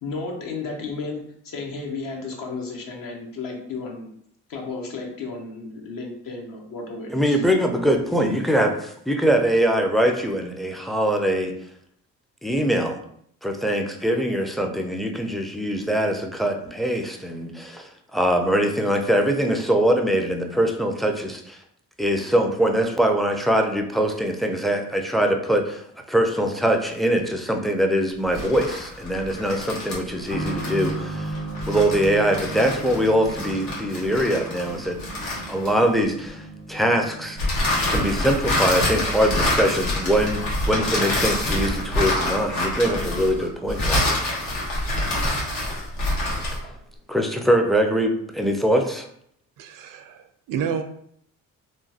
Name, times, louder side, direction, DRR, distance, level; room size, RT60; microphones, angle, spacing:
voice 1, 0.0-4.1 4.5-7.4, left 4 dB, 65° left, 0 dB, 0.9 m, -33 dB
voice 2, 7.1-11.5 12.4-13.0 13.4-21.6 22.0-25.8 26.1-31.4 31.7-35.0 35.3-37.5 37.9-44.2 47.1-49.1, equal, ahead, 3 dB, 0.4 m, -22 dB
sound 1, 28.2-36.0 37.4-46.7, left 1 dB, 80° left, 1.2 m, -26 dB
sound 2, 30.3-44.7 45.0-45.1 46.0-46.2, right 2 dB, 40° left, 1.1 m, -37 dB
voice 3, 49.6-50.8, right 7 dB, 60° right, 7 dB, 0.5 m, -30 dB
3.0 x 2.1 x 2.8 m, 0.68 s
supercardioid pair, 60°, 36 cm